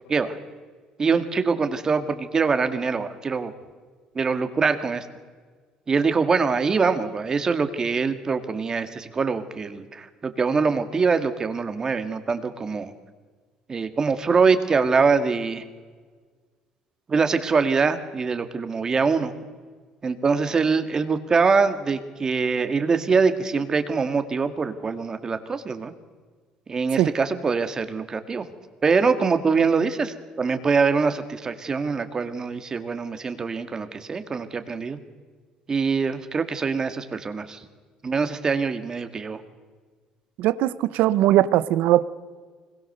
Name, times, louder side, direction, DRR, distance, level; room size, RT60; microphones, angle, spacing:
voice 1, 1.0-3.5 4.2-5.1 5.9-12.9 13.7-15.6 17.1-19.3 20.0-25.9 26.7-28.5 28.8-35.0 35.7-37.6 38.0-39.4, right 5 dB, 25° right, 9 dB, 1.9 m, -23 dB
voice 2, 40.4-42.0, right 14 dB, 80° right, 16 dB, 1.0 m, -19 dB
25.5 x 21.5 x 6.8 m, 1.5 s
cardioid pair, 135°, 2 cm